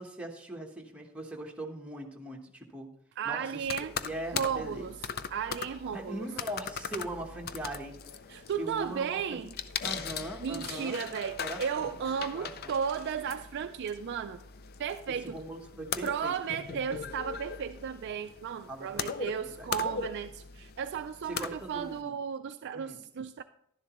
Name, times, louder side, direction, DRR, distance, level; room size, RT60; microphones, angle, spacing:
voice 1, 0.0-2.9 3.2-3.7 4.0-4.9 5.9-8.0 8.6-9.4 9.8-11.0 11.4-11.9 12.3-12.7 15.2-16.8 18.7-19.1 19.4-19.7 21.3-22.1 22.7-23.0, right 1 dB, 5° right, 1.0 m, -40 dB
voice 2, 3.2-3.9 4.3-5.0 5.3-6.3 8.3-9.5 10.4-14.4 14.8-15.4 16.0-23.4, right 7 dB, 55° right, 0.3 m, -34 dB
sound 1, 3.6-22.0, left 6 dB, 45° left, 0.5 m, -40 dB
11.0 x 10.5 x 3.0 m
head